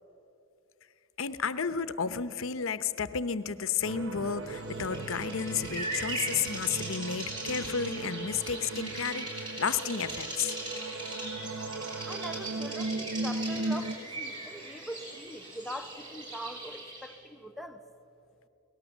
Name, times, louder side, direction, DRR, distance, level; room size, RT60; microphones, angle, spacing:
voice 1, 1.2-10.6, left 6 dB, 70° left, 13 dB, 0.8 m, -32 dB
sound 1, 3.8-13.9, right 2 dB, 65° right, 0.9 m, -37 dB
Bird vocalization bird call bird song, 4.5-17.2, right 2 dB, 25° right, 5.0 m, -40 dB
voice 2, 12.1-17.8, equal, ahead, 6 dB, 0.8 m, -42 dB
23.5 x 18.5 x 7.2 m, 2.9 s
head